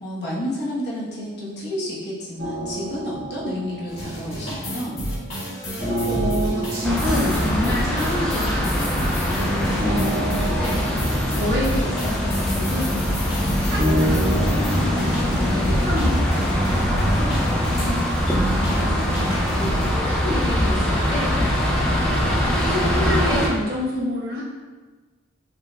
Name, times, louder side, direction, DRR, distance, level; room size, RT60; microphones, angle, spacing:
voice 1, 0.0-5.0 15.6-15.9 17.8-18.0 18.2-20.0 21.9-22.1, equal, 55° left, -7 dB, 1.1 m, -31 dB
sound 1, 2.4-15.8, right 1 dB, 80° right, 1.3 m, -30 dB
sound 2, 3.9-19.9, equal, 85° left, 1.4 m, -30 dB
voice 2, 5.7-13.0 13.6-17.7 18.3-19.1 19.8-21.4 22.0-24.4, left 1 dB, 50° right, -6 dB, 1.0 m, -29 dB
sound 3, 6.8-23.5, equal, 5° left, 0.4 m, -22 dB
5.2 x 3.1 x 2.2 m, 1.3 s
head